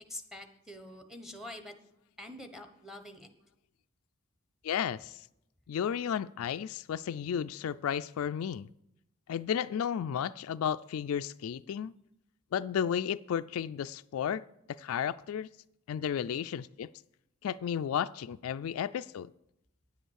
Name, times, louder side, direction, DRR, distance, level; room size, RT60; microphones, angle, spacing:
voice 1, 0.1-1.7 2.2-3.3, left 1 dB, ahead, 1.0 m, -45 dB
voice 2, 4.6-5.3 5.7-8.7 9.3-11.9 12.5-14.4 14.7-15.5 15.9-16.9 17.4-19.3, left 8 dB, 70° left, 0.3 m, -33 dB
10.0 x 7.9 x 6.3 m
head